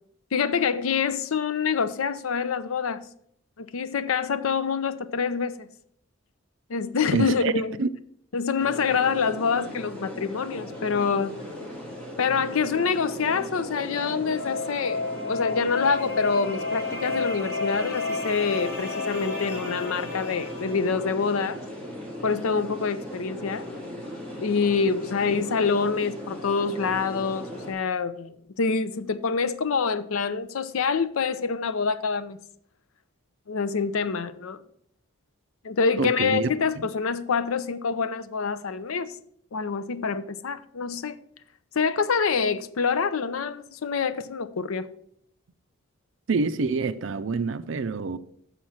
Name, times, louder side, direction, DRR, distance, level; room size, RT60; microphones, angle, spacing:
voice 1, 0.3-3.1 3.6-5.7 6.7-7.7 8.3-11.3 12.2-21.6 22.2-23.7 24.4-32.4 33.5-34.6 35.6-39.1 39.5-41.2 41.8-44.9, left 5 dB, 75° left, 0.5 m, -26 dB
voice 2, 7.1-7.5 7.8-7.9 36.0-36.5 36.8-36.9 46.3-48.2, right 4 dB, 60° right, 0.5 m, -26 dB
sound 1, 8.6-27.7, equal, 5° left, 1.9 m, -38 dB
sound 2, 13.5-21.2, left 3 dB, 50° left, 1.5 m, -32 dB
6.9 x 5.7 x 6.2 m
head